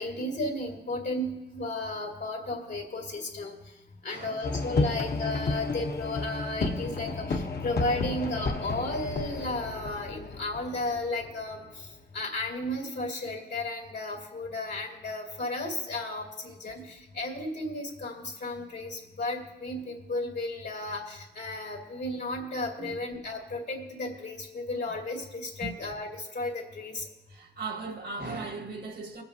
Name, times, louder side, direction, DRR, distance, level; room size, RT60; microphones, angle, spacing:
voice 1, 0.0-3.7 4.0-27.1, left 2 dB, 85° left, 2.3 m, -34 dB
voice 2, 4.1-4.5 4.8-4.9 22.8-23.0 23.3-23.4 25.6-25.8 27.3-29.2, right 3 dB, 80° right, 1.7 m, -38 dB
sound 1, 4.4-12.0, left 3 dB, 65° left, 0.8 m, -32 dB
22.0 x 7.8 x 2.7 m
cardioid pair, 55°, 18 cm